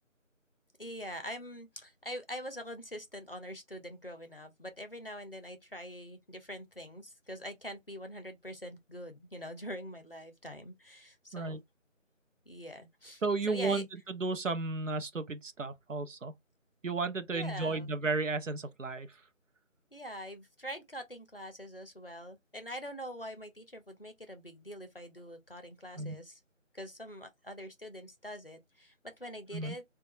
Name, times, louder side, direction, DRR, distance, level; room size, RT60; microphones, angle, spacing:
voice 1, 0.8-11.6 12.5-13.8 17.3-17.9 19.9-26.4 26.7-29.8, equal, 45° left, 0.6 m, -44 dB
voice 2, 13.2-16.3 16.8-19.1 26.0-26.2 29.5-29.8, right 3 dB, 70° right, 0.6 m, -33 dB
3.0 x 2.2 x 2.7 m
figure-of-eight pair, 170°, 40 cm